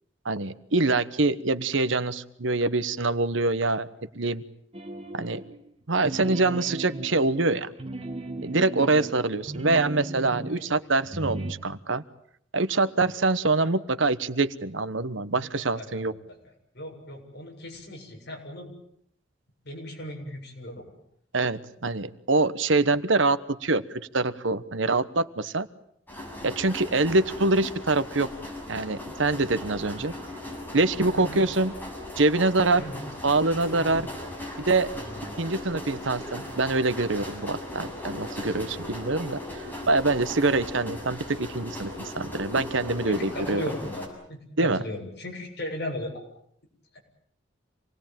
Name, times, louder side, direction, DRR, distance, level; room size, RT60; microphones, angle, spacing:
voice 1, 0.2-3.9 4.1-4.4 5.1-5.4 5.9-7.7 8.4-12.0 12.5-16.1 21.3-25.7 26.4-28.3 28.7-30.1 30.7-31.7 32.2-32.8 33.2-34.1 34.6-34.9 35.4-39.4 39.9-43.6 44.6-44.8, right 3 dB, 70° right, 13 dB, 1.1 m, -25 dB
sound 1, 4.7-5.6 6.0-10.6 11.0-11.5, right 1 dB, 30° right, 2.5 m, -37 dB
voice 2, 8.9-9.4 13.6-13.7 15.3-15.5 15.7-16.4 16.7-18.7 19.6-20.9 31.1-31.4 32.8-33.0 33.8-34.1 35.0-35.3 43.0-46.2 46.9-47.0, left 1 dB, 55° left, 1 dB, 7.4 m, -37 dB
sound 2, 26.1-44.1, left 1 dB, 10° left, 6.9 m, -38 dB
27.5 x 19.5 x 9.1 m, 0.70 s
head